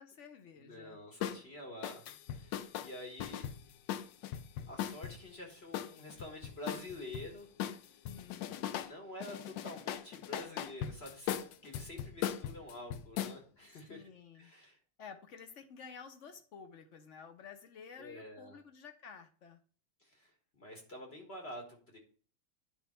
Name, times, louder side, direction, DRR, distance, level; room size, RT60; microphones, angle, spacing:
voice 1, 0.0-1.0 8.0-8.7 13.9-14.5 15.0-19.6, left 6 dB, 55° left, 8 dB, 0.8 m, -52 dB
voice 2, 0.5-2.0 2.3-3.5 4.7-7.5 7.8-8.0 8.6-14.0 14.3-14.8 18.0-18.6 20.0-22.0, left 1 dB, 35° left, 2 dB, 1.5 m, -48 dB
sound 1, 1.2-1.4 1.8-5.2 5.7-7.3 7.6-8.9 9.2-13.4, left 10 dB, 75° left, 1.2 m, -39 dB
10.5 x 3.6 x 4.3 m, 0.43 s
omnidirectional pair, 2.2 m